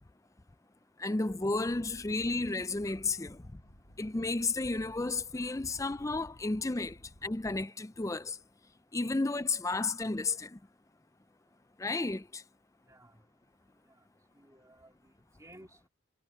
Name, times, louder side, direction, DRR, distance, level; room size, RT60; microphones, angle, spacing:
voice 1, 1.0-3.4 4.0-7.0 7.2-8.4 8.9-10.6 11.8-12.4, left 3 dB, 15° left, 0.4 m, -32 dB
sound 1, 1.5-7.7, equal, 55° left, 6.4 m, -55 dB
voice 2, 12.9-13.2 13.9-14.0 14.3-15.1 15.4-15.9, right 1 dB, 15° right, 3.2 m, -56 dB
head